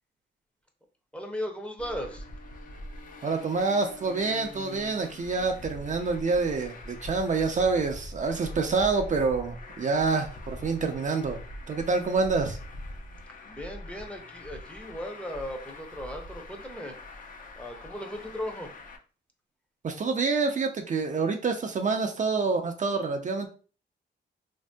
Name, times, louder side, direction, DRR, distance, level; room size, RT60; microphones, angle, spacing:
voice 1, 1.1-2.3 13.4-17.2 17.6-18.7, equal, 5° left, 3 dB, 0.6 m, -37 dB
Traffic noise roadway noise, 1.8-19.0, left 1 dB, 45° left, 0.6 m, -43 dB
voice 2, 3.2-11.4 11.7-12.6 19.8-23.5, right 4 dB, 40° right, 5 dB, 0.5 m, -27 dB
3.4 x 2.6 x 2.2 m, 0.37 s
cardioid pair, 95°, 19 cm